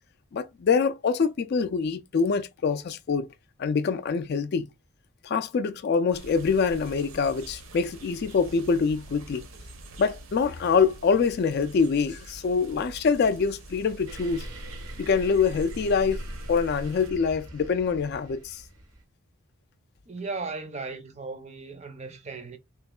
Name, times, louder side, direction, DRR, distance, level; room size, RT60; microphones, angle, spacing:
voice 1, 0.3-3.3 3.6-4.7 5.2-9.5 10.0-14.5 15.0-16.2 16.5-18.6, left 5 dB, 45° left, 0.3 m, -25 dB
sound 1, 6.1-17.1, right 2 dB, 65° right, 0.8 m, -46 dB
sound 2, 14.1-19.0, equal, 85° right, 1.3 m, -40 dB
voice 2, 20.1-22.6, right 3 dB, 30° right, 0.5 m, -36 dB
3.5 x 3.0 x 2.2 m
head